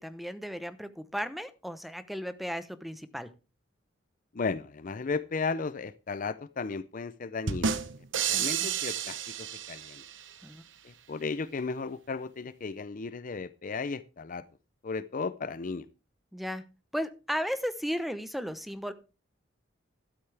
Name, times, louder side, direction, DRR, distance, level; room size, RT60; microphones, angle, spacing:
voice 1, 0.0-3.3 8.3-8.8 10.4-10.6 16.3-16.6 16.9-18.9, equal, ahead, 12 dB, 0.8 m, -35 dB
voice 2, 4.3-7.8 8.3-10.0 10.8-14.4 14.8-15.9, left 4 dB, 45° left, 15 dB, 0.5 m, -35 dB
sound 1, 7.5-10.3, right 7 dB, 75° right, 1.0 m, -31 dB
12.5 x 12.0 x 3.4 m, 0.31 s
head